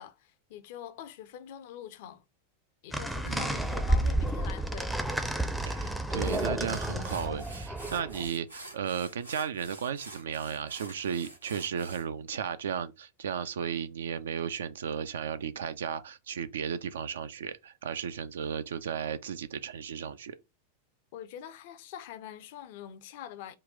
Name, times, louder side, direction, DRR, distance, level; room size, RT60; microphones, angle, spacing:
voice 1, 0.0-2.2 2.8-5.0 21.1-23.6, left 10 dB, 50° left, 0.5 m, -44 dB
sound 1, 2.9-8.3, right 1 dB, ahead, 0.5 m, -31 dB
voice 2, 3.2-3.7 5.7-20.4, right 7 dB, 65° right, 0.3 m, -35 dB
sound 2, 5.7-5.8 6.2-12.1, right 1 dB, 85° right, 1.0 m, -48 dB
3.8 x 2.2 x 3.7 m
figure-of-eight pair, 90°, 0 cm